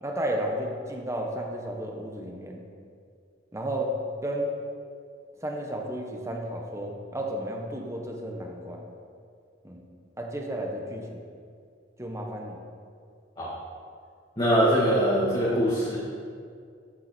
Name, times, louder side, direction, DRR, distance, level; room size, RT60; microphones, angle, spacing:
voice 1, 0.0-2.6 3.5-3.9 4.2-4.5 5.4-8.9 9.6-9.9 10.2-11.2 12.0-12.6, right 1 dB, 15° right, 1 dB, 1.2 m, -32 dB
voice 2, 14.4-16.0, equal, 25° left, -8 dB, 1.9 m, -23 dB
13.5 x 7.3 x 4.4 m, 2.3 s
head